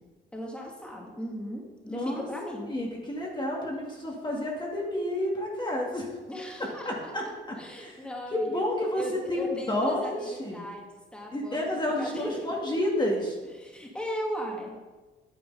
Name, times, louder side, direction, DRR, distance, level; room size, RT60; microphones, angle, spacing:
voice 1, 0.3-2.7 6.3-6.9 7.6-8.6 9.0-11.7 12.0-12.5 13.6-15.0, equal, 5° left, -1 dB, 2.3 m, -37 dB
voice 2, 1.9-2.3 2.7-6.1 6.8-8.1 8.3-10.6 11.3-13.4, left 1 dB, 20° left, -2 dB, 2.2 m, -30 dB
9.6 x 6.8 x 5.5 m, 1.3 s
cardioid pair, 90°, 20 cm